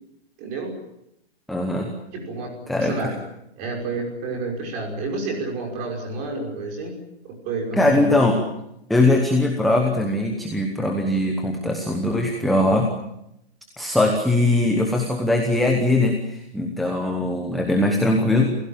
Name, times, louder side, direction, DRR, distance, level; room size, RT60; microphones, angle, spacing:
voice 1, 0.4-0.7 2.1-3.2 3.6-6.9 7.2-8.3, right 3 dB, 20° right, 2 dB, 5.9 m, -29 dB
voice 2, 1.5-1.9 2.7-3.1 7.8-8.4 8.9-12.9 13.8-18.6, left 2 dB, ahead, 2 dB, 1.0 m, -21 dB
28.5 x 16.5 x 8.8 m, 0.83 s
hypercardioid pair, 165°, 33 cm